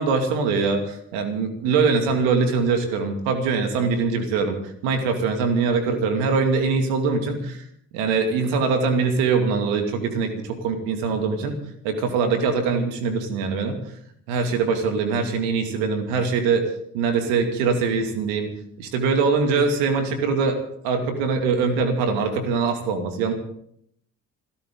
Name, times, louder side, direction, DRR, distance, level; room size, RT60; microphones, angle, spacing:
voice 1, 0.0-7.6 7.9-11.6 11.8-13.8 14.3-16.6 16.9-18.5 18.8-20.6 20.8-23.3, right 4 dB, 80° right, 5 dB, 2.6 m, -23 dB
27.0 x 12.5 x 3.9 m, 0.68 s
hypercardioid pair, 45°, 40 cm